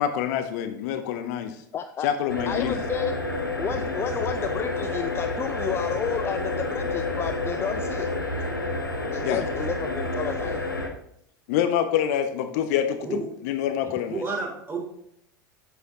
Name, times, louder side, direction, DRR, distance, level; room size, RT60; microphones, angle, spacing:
voice 1, 0.0-1.6 2.0-2.8 9.2-9.4 11.5-13.0 13.4-14.2, left 9 dB, 55° left, 9 dB, 0.7 m, -26 dB
voice 2, 1.7-2.1 2.5-3.1 3.6-8.1 9.1-10.8, left 7 dB, 25° left, 9 dB, 0.4 m, -31 dB
sound 1, 2.3-10.9, left 2 dB, 90° left, 0.9 m, -29 dB
voice 3, 14.1-14.8, right 3 dB, 20° right, -1 dB, 2.9 m, -30 dB
8.1 x 7.7 x 2.9 m, 0.74 s
figure-of-eight pair, 80°, 11 cm